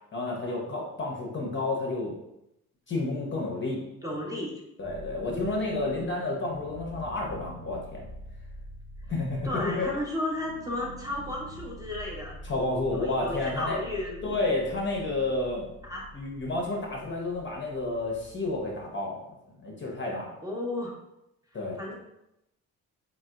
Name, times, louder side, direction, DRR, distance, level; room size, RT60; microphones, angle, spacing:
voice 1, 0.1-2.1 2.9-3.8 4.8-8.1 9.1-9.9 12.4-13.8 14.2-15.7 16.1-19.2 19.6-20.3 21.5-21.8, left 2 dB, 25° left, -2 dB, 0.7 m, -30 dB
voice 2, 4.0-4.5 5.3-6.1 9.4-12.4 12.9-14.5 15.8-16.0 20.4-20.9 21.8-21.9, left 1 dB, 10° right, -4 dB, 0.7 m, -34 dB
sound 1, 4.8-18.9, equal, 70° right, 0.7 m, -46 dB
3.4 x 2.1 x 2.2 m, 0.86 s
hypercardioid pair, 45°, 43 cm